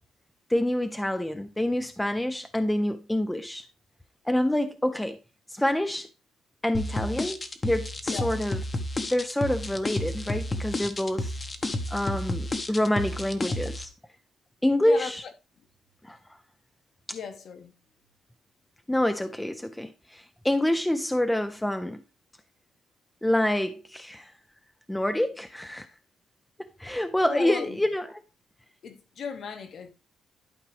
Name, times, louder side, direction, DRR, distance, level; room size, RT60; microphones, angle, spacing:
voice 1, 0.5-3.7 4.3-5.2 5.5-6.1 6.6-8.6 9.1-11.4 11.9-13.9 14.6-15.3 16.0-16.2 17.1-17.2 18.9-22.0 23.2-24.3 24.9-25.9 26.8-28.2, left 1 dB, 5° left, 0.4 m, -27 dB
sound 1, 6.7-13.8, left 1 dB, 20° left, 0.8 m, -31 dB
voice 2, 17.1-17.7 27.3-27.8 28.8-29.9, left 6 dB, 45° left, 1.1 m, -36 dB
11.5 x 4.9 x 3.2 m
cardioid pair, 170°, 0 cm